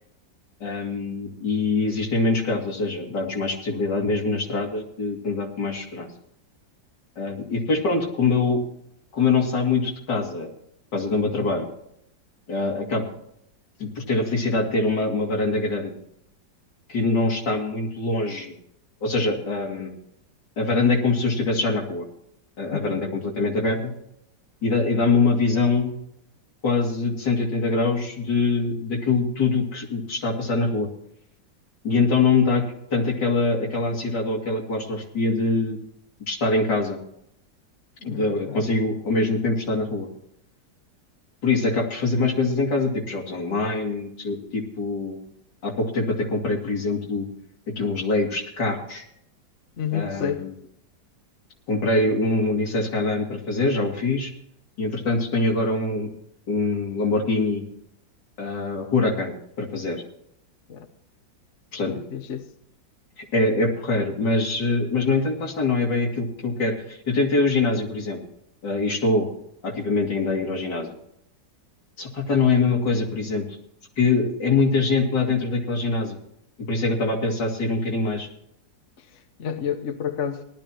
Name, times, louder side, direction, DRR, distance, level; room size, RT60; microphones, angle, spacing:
voice 1, 0.6-6.1 7.2-8.6 9.1-10.5 10.9-11.7 12.5-13.0 13.8-15.9 16.9-18.5 19.0-19.9 20.6-22.1 22.6-23.9 24.6-25.9 26.6-30.9 31.8-32.6 32.9-35.8 36.3-37.0 38.0-40.1 41.4-45.2 45.6-47.3 47.8-49.0 49.9-50.5 51.7-54.3 54.8-56.1 56.5-57.6 58.4-60.0 61.7-62.0 63.2-68.2 68.6-69.3 69.6-70.9 72.0-73.4 74.0-76.2 76.7-78.3, left 3 dB, 70° left, 0 dB, 3.2 m, -24 dB
voice 2, 38.0-38.7 49.8-50.5 60.7-60.9 61.9-62.5 79.0-80.4, left 8 dB, 50° left, 7 dB, 1.1 m, -30 dB
19.0 x 12.5 x 3.0 m, 0.74 s
omnidirectional pair, 2.0 m